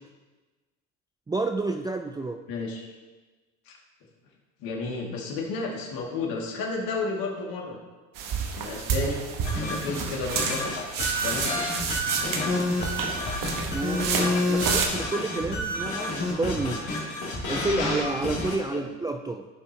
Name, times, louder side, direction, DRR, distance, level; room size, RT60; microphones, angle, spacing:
voice 1, 1.3-2.4 13.7-17.0 17.5-19.5, right 3 dB, 10° right, 4 dB, 0.4 m, -30 dB
voice 2, 2.5-2.9 3.7-3.8 4.6-7.8 8.5-9.2 9.6-10.6 11.1-11.5 18.7-18.9, left 3 dB, 60° left, -1 dB, 2.3 m, -32 dB
sound 1, 8.2-14.9, right 6 dB, 55° right, 1.3 m, -30 dB
sound 2, 9.4-18.6, left 1 dB, 85° left, 2.8 m, -29 dB
14.5 x 5.6 x 2.9 m, 1.3 s
hypercardioid pair, 75°, 40 cm